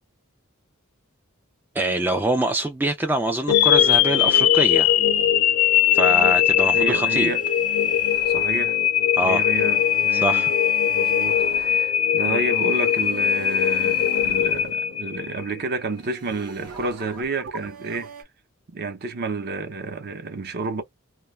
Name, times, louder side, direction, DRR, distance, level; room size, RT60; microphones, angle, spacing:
voice 1, 1.7-5.0 5.9-7.3 9.1-9.4 10.1-10.5, right 1 dB, 10° right, 0.3 m, -24 dB
sound 1, 3.5-15.6, left 10 dB, 85° left, 0.5 m, -20 dB
voice 2, 6.7-7.4 8.3-8.8 9.2-10.4 10.9-18.1 18.7-20.8, right 3 dB, 50° right, 0.7 m, -30 dB
sound 2, 6.9-15.4 15.9-18.2, right 5 dB, 80° right, 0.9 m, -41 dB
2.2 x 2.2 x 3.1 m
head